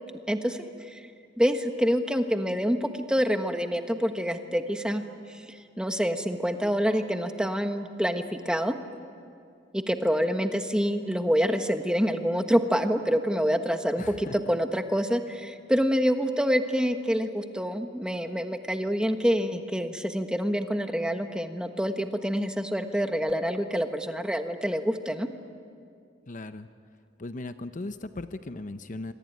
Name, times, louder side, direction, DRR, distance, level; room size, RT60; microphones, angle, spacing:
voice 1, 0.3-1.1 1.4-5.0 5.3-8.7 9.7-25.3, equal, 5° right, 6 dB, 1.3 m, -27 dB
voice 2, 14.0-14.4 26.3-26.7 27.2-29.1, left 2 dB, 45° left, 10 dB, 0.7 m, -37 dB
26.5 x 24.0 x 9.4 m, 2.4 s
head